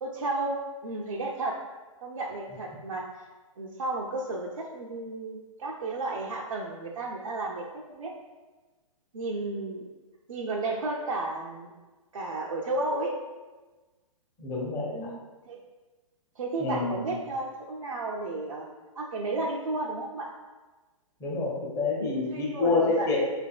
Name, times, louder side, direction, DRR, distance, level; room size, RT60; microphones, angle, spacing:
voice 1, 0.0-1.6 2.0-3.3 3.6-8.1 9.1-9.9 10.3-11.7 12.1-13.1 14.9-15.2 15.5-15.6 16.4-18.7 19.0-20.3 22.3-23.2, right 2 dB, 70° right, -3 dB, 0.5 m, -33 dB
voice 2, 14.4-14.9 16.6-17.1 21.2-23.2, left 3 dB, 20° left, -4 dB, 0.8 m, -27 dB
5.1 x 3.3 x 2.2 m, 1.2 s
figure-of-eight pair, 120°, 17 cm